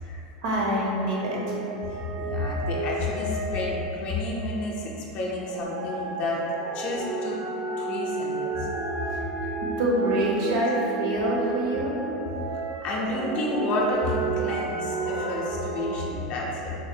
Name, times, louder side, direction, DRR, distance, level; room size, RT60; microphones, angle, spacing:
voice 1, 0.4-1.6 9.1-9.2 9.8-11.9, right 1 dB, 65° right, -4 dB, 0.7 m, -25 dB
sound 1, 1.0-4.7 5.4-16.0, right 3 dB, 40° right, 0.3 m, -32 dB
voice 2, 1.9-6.5 6.7-7.4 7.8-8.7 9.1-9.5 12.8-16.8, left 2 dB, 35° left, -4 dB, 0.5 m, -30 dB
4.1 x 2.3 x 2.6 m, 2.9 s
supercardioid pair, 165°, 4 cm